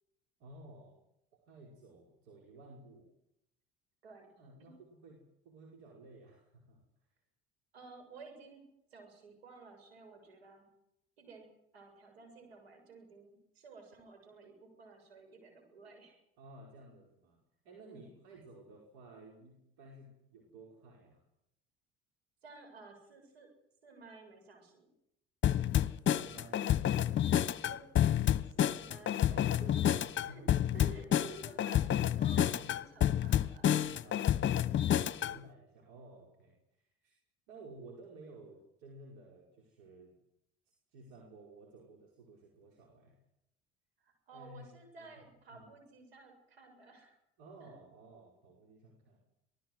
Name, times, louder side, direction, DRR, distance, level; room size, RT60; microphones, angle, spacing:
voice 1, 0.4-1.0 1.3-3.1 4.4-7.2 16.4-17.4 17.6-21.2 26.1-27.3 29.3-31.3 32.0-32.7 34.0-37.2 37.5-40.2 40.7-43.2 44.3-44.7 45.0-45.1 45.5-45.6 47.4-49.2, right 2 dB, 70° right, 0 dB, 5.3 m, -54 dB
voice 2, 7.7-8.6 8.9-10.7 11.2-11.5 11.7-16.2 17.9-18.1 22.4-23.5 23.8-24.9 27.7-27.8 28.5-29.6 30.3-30.4 30.7-31.8 32.2-33.8 35.2-35.4 37.5-37.7 44.0-47.2 47.6-47.7, right 3 dB, 90° right, 4 dB, 7.3 m, -54 dB
sound 1, 25.4-35.4, left 11 dB, 40° left, 1.0 m, -29 dB
26.0 x 19.0 x 7.9 m, 0.81 s
hypercardioid pair, 65°, 30 cm